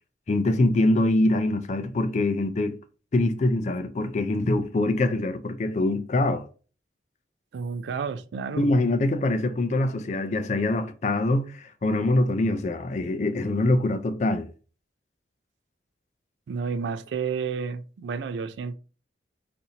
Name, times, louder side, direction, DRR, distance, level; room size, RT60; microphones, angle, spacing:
voice 1, 0.3-2.8 3.1-6.5 8.6-14.5, left 2 dB, 40° left, 0.4 m, -24 dB
voice 2, 7.5-8.7 16.5-18.7, right 5 dB, 85° right, 0.3 m, -31 dB
4.1 x 2.6 x 2.8 m
head